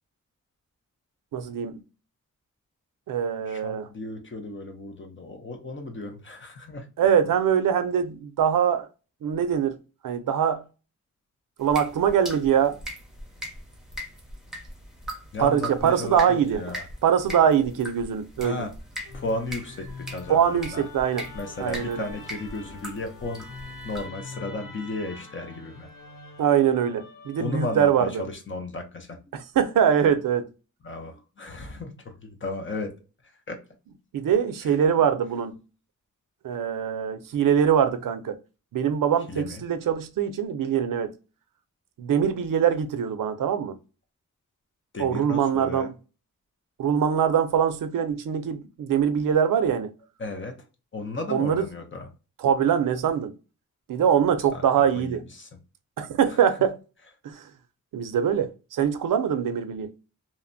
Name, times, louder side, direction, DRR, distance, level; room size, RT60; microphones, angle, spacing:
voice 1, 1.3-1.8 3.1-3.9 7.0-8.9 9.2-9.8 10.0-10.6 11.6-12.8 15.4-16.6 17.0-18.7 20.3-21.3 21.6-22.0 26.4-28.2 29.3-30.5 34.1-35.6 36.4-38.4 38.7-41.1 42.0-43.8 45.0-45.9 46.8-49.9 51.3-51.6 52.4-53.3 53.9-55.2 56.0-56.7 57.2-57.4 57.9-59.9, right 8 dB, 85° right, 0.5 m, -23 dB
voice 2, 3.5-6.9 15.3-16.8 18.4-18.7 19.1-20.8 21.3-23.5 23.8-25.9 27.4-29.2 30.8-32.9 33.2-33.6 34.6-35.1 39.3-39.6 44.9-45.9 50.2-50.6 50.9-52.1 54.5-54.6 54.9-55.5 56.3-56.6, left 2 dB, 40° left, 0.6 m, -35 dB
sound 1, 11.6-24.1, right 1 dB, ahead, 0.7 m, -40 dB
Musical instrument, 19.0-28.3, left 3 dB, 90° left, 0.6 m, -44 dB
2.7 x 2.1 x 2.5 m
wide cardioid pair, 160°, 32 cm